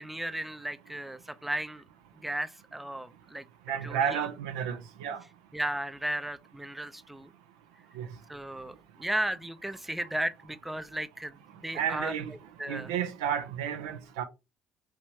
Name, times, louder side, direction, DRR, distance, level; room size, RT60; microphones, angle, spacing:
voice 1, 0.0-1.8 2.2-3.4 3.8-4.2 5.5-7.3 8.3-11.4 11.6-12.1 12.6-12.9, right 1 dB, 5° right, 0.4 m, -35 dB
voice 2, 3.7-5.2 8.0-8.1 11.7-12.3 12.7-14.2, right 8 dB, 80° right, 0.5 m, -31 dB
3.3 x 3.0 x 2.7 m
hypercardioid pair, 55°, 2 cm